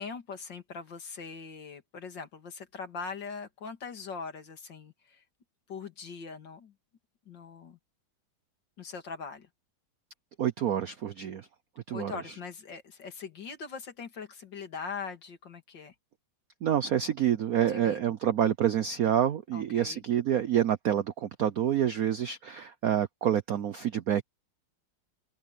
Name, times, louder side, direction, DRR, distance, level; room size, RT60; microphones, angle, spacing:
voice 1, 0.0-5.2 5.7-6.7 7.3-7.8 8.8-9.5 11.9-15.9 17.7-18.2 19.5-20.0, left 5 dB, 55° left, 2.8 m, -41 dB
voice 2, 10.4-11.5 11.9-12.1 16.6-24.2, right 10 dB, 65° right, 0.9 m, -27 dB
open air
omnidirectional pair, 2.3 m